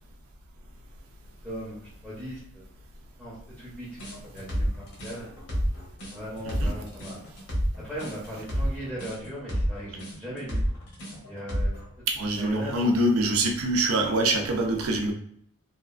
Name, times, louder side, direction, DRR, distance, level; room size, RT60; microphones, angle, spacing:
voice 1, 1.4-2.6 3.2-4.0 4.3-5.3 6.0-7.2 7.8-10.6 11.3-11.8 12.4-13.0, equal, 5° right, -8 dB, 0.7 m, -38 dB
sound 1, 4.0-11.9, equal, 70° left, 1.0 m, -29 dB
voice 2, 12.1-15.1, right 1 dB, 75° right, 2 dB, 0.5 m, -24 dB
2.8 x 2.4 x 2.4 m, 0.70 s
head